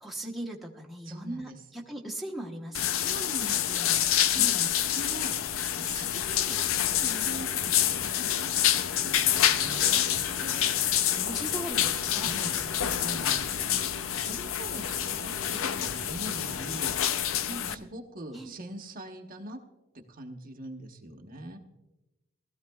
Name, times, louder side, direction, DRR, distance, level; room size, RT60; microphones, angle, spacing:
voice 1, 0.0-3.2 4.3-4.6 11.1-12.8 17.4-17.9 18.3-18.5, right 1 dB, ahead, -2 dB, 1.0 m, -39 dB
voice 2, 1.0-1.6 2.8-8.5 9.0-10.8 12.2-12.5 12.9-13.6 14.2-16.9 17.5-19.6 19.9-21.6, right 1 dB, 40° right, 3 dB, 1.1 m, -43 dB
sound 1, 2.7-17.7, left 10 dB, 65° left, 0.5 m, -27 dB
sound 2, 6.1-17.0, right 1 dB, 85° right, 1.5 m, -46 dB
20.0 x 13.5 x 2.3 m, 1.0 s
head